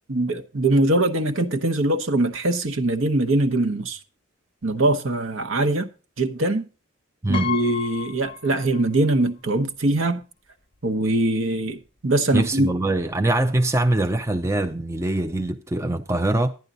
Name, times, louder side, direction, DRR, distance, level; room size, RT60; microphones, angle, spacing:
voice 1, 0.1-4.0 4.6-5.9 6.2-6.7 7.3-10.2 10.8-12.7, right 2 dB, 65° right, 1.1 m, -22 dB
Piano, 7.3-9.2 9.5-9.6 10.7-10.8 11.1-11.4, left 9 dB, 25° left, 0.7 m, -33 dB
voice 2, 12.3-16.5, right 2 dB, 15° right, 0.4 m, -23 dB
11.0 x 10.5 x 3.9 m
head